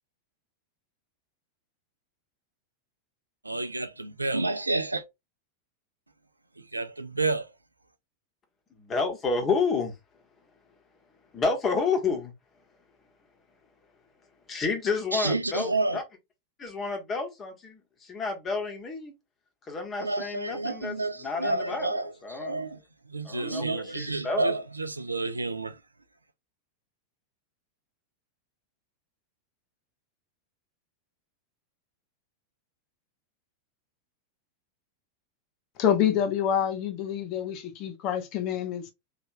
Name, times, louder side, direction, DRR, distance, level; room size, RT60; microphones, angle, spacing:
voice 1, 3.4-5.0 6.6-7.5 15.1-16.0 20.0-22.8 23.1-25.8, right 2 dB, 80° right, 0.4 m, -30 dB
voice 2, 8.8-9.9 11.3-12.3 14.5-16.0 16.6-19.1 19.7-21.9 22.2-22.6 23.2-23.6 23.9-24.4, left 4 dB, 25° left, 1.3 m, -30 dB
voice 3, 35.8-38.9, left 9 dB, 40° left, 0.8 m, -27 dB
3.3 x 2.8 x 2.7 m
figure-of-eight pair, 90°, 0 cm